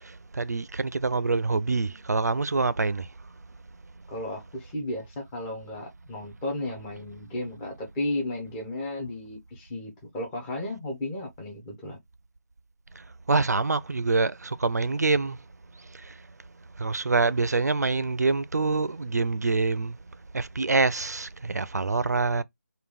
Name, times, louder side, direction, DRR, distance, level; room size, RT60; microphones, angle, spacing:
voice 1, 0.4-3.0 13.3-15.4 16.8-19.9 20.3-22.4, right 3 dB, 70° right, 0.5 m, -25 dB
voice 2, 4.1-12.0, left 1 dB, 5° left, 0.4 m, -34 dB
3.9 x 2.2 x 3.3 m
figure-of-eight pair, 160°, 9 cm